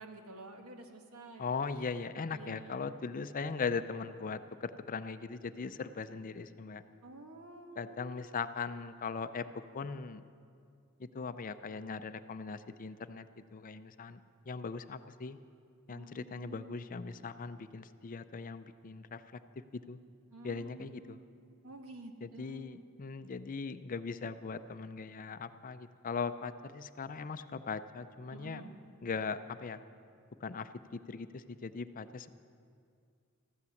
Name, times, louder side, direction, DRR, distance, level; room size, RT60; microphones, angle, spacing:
voice 1, 0.0-1.4 2.3-2.8 7.0-8.4 15.9-16.8 20.3-21.3 21.6-22.8 28.3-28.7, right 2 dB, 75° right, 4 dB, 1.4 m, -50 dB
voice 2, 1.4-6.8 7.8-9.5 9.7-10.2 11.0-14.2 14.4-15.4 15.9-19.4 19.7-20.0 20.4-21.2 22.2-28.6 29.0-29.8 30.4-32.3, left 5 dB, 40° left, 12 dB, 0.5 m, -39 dB
14.5 x 11.0 x 7.1 m, 2.3 s
head